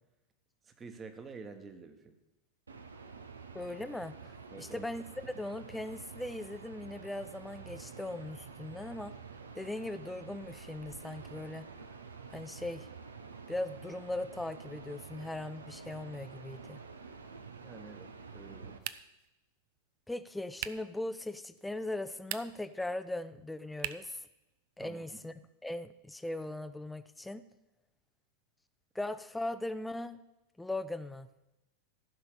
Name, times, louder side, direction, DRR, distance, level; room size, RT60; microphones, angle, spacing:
voice 1, 0.6-2.1 4.5-4.9 17.6-18.8 24.8-25.2, right 4 dB, 20° right, 7 dB, 1.4 m, -49 dB
sound 1, 2.7-18.8, right 5 dB, 75° right, 0.9 m, -49 dB
voice 2, 3.5-9.1 9.5-11.6 12.3-12.9 13.5-16.8 20.1-24.2 24.8-25.3 25.6-27.4 28.9-30.2 30.6-31.3, left 2 dB, 5° left, 13 dB, 0.6 m, -39 dB
sound 2, 18.8-19.3 20.6-20.9 22.1-22.7 23.8-24.2, right 14 dB, 50° right, 0.5 m, -40 dB
14.0 x 5.7 x 6.7 m, 0.95 s
figure-of-eight pair, 90°, 0 cm